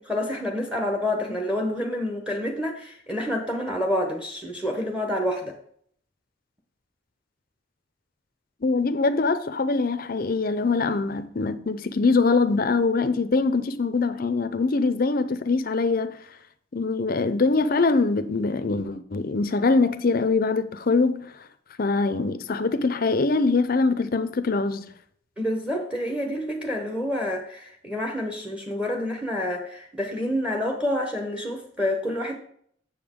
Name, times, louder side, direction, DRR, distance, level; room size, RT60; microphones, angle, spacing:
voice 1, 0.0-5.6 25.4-32.4, left 1 dB, 5° right, 0.8 m, -28 dB
voice 2, 8.6-16.2 16.7-21.3 21.8-24.9, left 3 dB, 45° left, 0.5 m, -23 dB
6.9 x 6.8 x 3.6 m
head